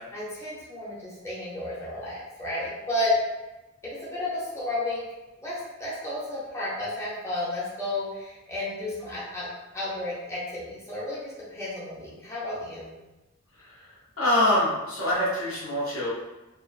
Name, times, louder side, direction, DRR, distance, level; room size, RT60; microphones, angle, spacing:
voice 1, 0.1-3.2 3.8-5.0 5.4-9.5 9.7-12.9, left 1 dB, 15° left, -9 dB, 0.6 m, -32 dB
voice 2, 14.2-16.1, left 1 dB, 75° left, -8 dB, 0.9 m, -24 dB
2.3 x 2.2 x 2.4 m, 1.1 s
head